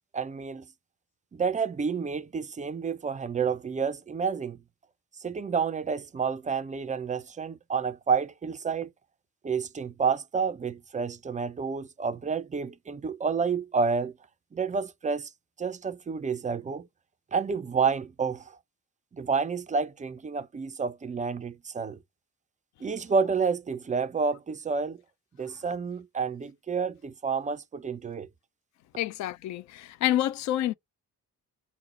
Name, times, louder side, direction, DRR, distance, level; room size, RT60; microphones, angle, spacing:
voice 1, 0.1-0.7 1.3-4.6 5.2-8.9 9.4-14.1 14.5-15.3 15.6-16.8 17.3-18.4 19.1-22.0 22.8-25.0 25.4-28.3, right 5 dB, 15° right, 0.5 m, -29 dB
voice 2, 29.0-30.7, left 13 dB, 40° left, 0.5 m, -28 dB
5.6 x 2.1 x 4.0 m
figure-of-eight pair, 45°, 48 cm